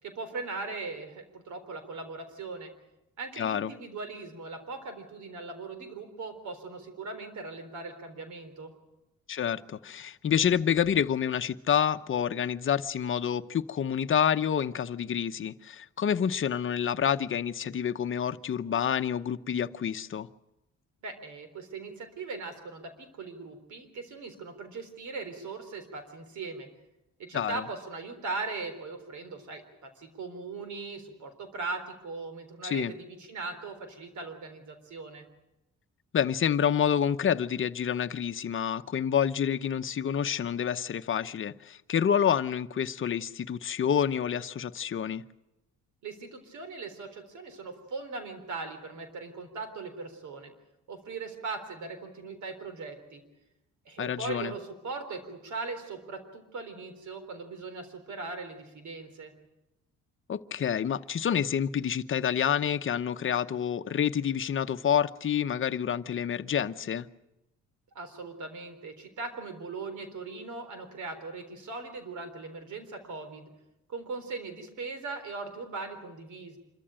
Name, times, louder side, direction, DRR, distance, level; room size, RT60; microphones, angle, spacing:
voice 1, 0.0-2.7 3.2-8.7 21.0-26.7 27.2-35.3 46.0-50.5 50.9-53.2 53.9-59.3 67.9-73.5 73.9-76.6, right 3 dB, 70° right, 3.9 m, -39 dB
voice 2, 3.4-3.7 9.3-20.3 27.3-27.6 32.6-32.9 36.1-45.2 54.0-54.5 60.3-67.1, left 8 dB, 40° left, 0.9 m, -28 dB
26.5 x 14.0 x 9.0 m
cardioid pair, 90°, 30 cm